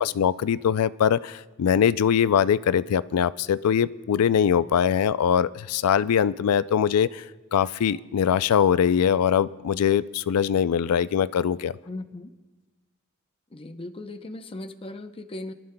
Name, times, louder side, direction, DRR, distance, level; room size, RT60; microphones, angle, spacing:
voice 1, 0.0-7.2 7.5-11.7, left 8 dB, 85° left, 16 dB, 0.4 m, -22 dB
voice 2, 11.9-12.3 13.5-15.5, left 2 dB, 25° left, 7 dB, 0.6 m, -37 dB
26.5 x 12.5 x 2.2 m, 1.2 s
head